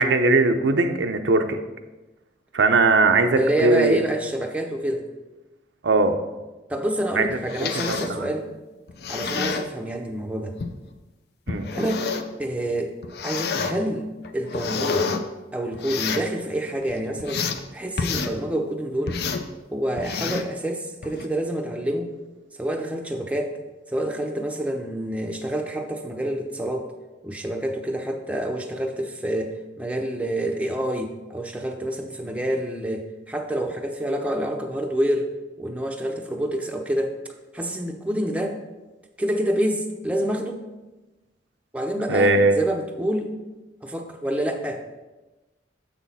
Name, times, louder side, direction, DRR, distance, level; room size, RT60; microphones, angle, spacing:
voice 1, 0.0-1.6 2.5-4.0 5.8-6.2 7.2-7.3 7.6-8.3 11.5-11.7 42.1-42.6, right 3 dB, 80° right, 6 dB, 0.6 m, -19 dB
voice 2, 3.4-5.1 6.7-8.5 9.1-10.5 11.7-12.1 12.4-12.9 13.2-15.1 15.5-17.4 17.7-19.2 19.7-22.1 22.6-23.6 23.9-26.9 27.2-35.3 35.6-37.2 37.5-38.6 39.2-40.6 41.7-43.3 43.8-45.0, right 1 dB, 5° right, 2 dB, 0.6 m, -27 dB
sound 1, 7.3-8.2 8.9-9.7 10.6-10.7 11.5-12.3 13.0-13.7 14.2-15.2 15.7-16.3 16.8-17.6 18.0-18.3 19.1-19.5 20.0-20.5 21.0-21.3, left 5 dB, 60° left, 0.5 m, -28 dB
7.2 x 6.1 x 4.1 m, 1.1 s
head